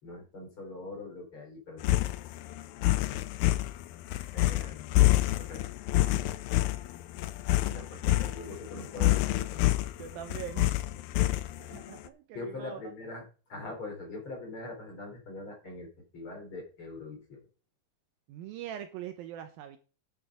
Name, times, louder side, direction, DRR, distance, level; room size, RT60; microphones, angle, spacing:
voice 1, 0.0-1.9 4.3-4.9 5.4-5.6 7.7-9.6 12.3-13.2 13.5-15.9 16.1-17.4, left 2 dB, 35° left, 3.9 m, -42 dB
sound 1, 1.8-11.8, left 16 dB, 80° left, 2.2 m, -27 dB
voice 2, 10.0-10.7 11.6-12.8 18.3-19.8, right 11 dB, 75° right, 2.4 m, -42 dB
10.0 x 6.5 x 4.8 m
omnidirectional pair, 4.6 m